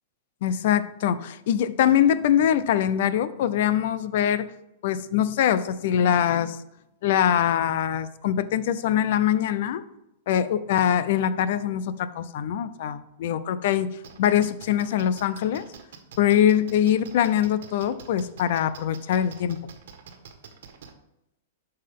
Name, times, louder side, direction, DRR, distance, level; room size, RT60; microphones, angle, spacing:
voice 1, 0.4-4.5 4.8-6.6 7.0-9.8 10.3-15.7 16.2-19.6, left 10 dB, 60° left, 15 dB, 0.6 m, -23 dB
sound 1, 14.0-20.9, right 7 dB, 70° right, 1.4 m, -45 dB
10.5 x 5.6 x 3.7 m, 0.87 s
hypercardioid pair, 145°, 0 cm